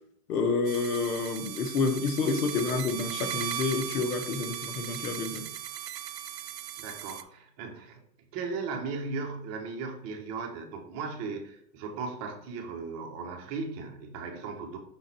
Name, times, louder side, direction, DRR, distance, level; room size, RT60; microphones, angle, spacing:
voice 1, 0.3-5.5, left 4 dB, 70° left, 6 dB, 1.3 m, -29 dB
sound 1, 0.7-7.2, right 10 dB, 90° right, 0.7 m, -37 dB
voice 2, 6.8-8.0 8.3-14.8, right 4 dB, 30° right, 2 dB, 1.3 m, -37 dB
6.3 x 3.8 x 4.3 m, 0.72 s
hypercardioid pair, 135°, 48 cm